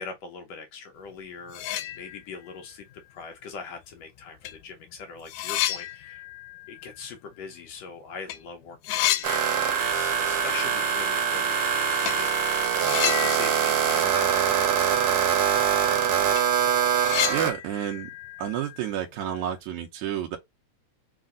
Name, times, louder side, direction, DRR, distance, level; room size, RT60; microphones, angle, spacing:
voice 1, 0.0-2.9 3.1-6.2 6.7-12.6 13.0-15.4, left 5 dB, 70° left, 1.8 m, -41 dB
sound 1, 1.1-1.2 1.5-2.5 2.9-3.0 3.9-4.0 4.4-8.4 8.6-10.2 10.5-10.6 12.0-12.3 12.8-14.9 15.2-15.3 15.7-15.8 16.2-19.4, left 13 dB, 90° left, 2.0 m, -32 dB
sound 2, 9.2-17.5, right 8 dB, 65° right, 1.7 m, -23 dB
voice 2, 17.3-18.1 18.4-20.4, right 10 dB, 85° right, 2.2 m, -30 dB
4.8 x 2.5 x 3.7 m
omnidirectional pair, 3.3 m